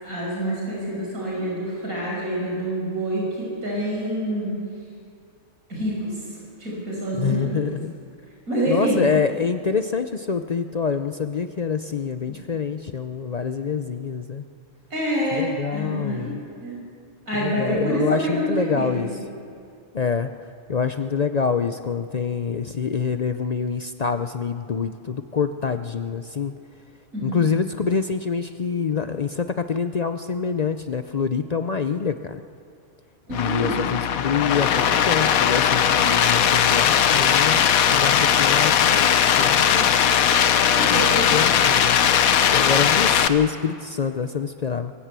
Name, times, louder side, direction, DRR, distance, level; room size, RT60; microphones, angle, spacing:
voice 1, 0.0-4.6 5.7-6.2 6.6-7.6 8.5-9.0 12.3-12.4 14.9-16.3 16.6-16.8 17.3-19.1 27.1-27.4 33.3-33.8 40.5-41.4 42.9-43.1, equal, 85° right, -4 dB, 6.3 m, -27 dB
voice 2, 7.2-7.9 8.7-14.4 15.3-16.4 17.4-19.1 19.9-20.3 20.7-26.5 27.2-32.4 33.3-39.9 40.9-41.0 41.3-42.0 42.5-44.9, left 6 dB, 60° left, 9 dB, 0.4 m, -26 dB
sound 1, 33.3-43.3, left 8 dB, 80° left, 1.3 m, -19 dB
23.0 x 13.5 x 8.2 m, 2.4 s
omnidirectional pair, 1.5 m